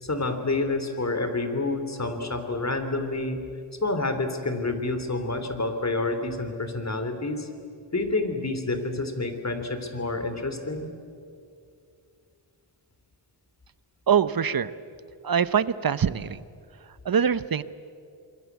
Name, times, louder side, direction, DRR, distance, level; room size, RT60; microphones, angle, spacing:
voice 1, 0.0-3.4 3.8-7.5 7.9-10.9, left 2 dB, 35° left, 8 dB, 3.4 m, -28 dB
voice 2, 14.1-14.7 15.2-16.4 17.0-17.6, right 7 dB, 45° right, 16 dB, 0.9 m, -23 dB
27.5 x 22.0 x 8.3 m, 2.4 s
cardioid pair, 70°, 47 cm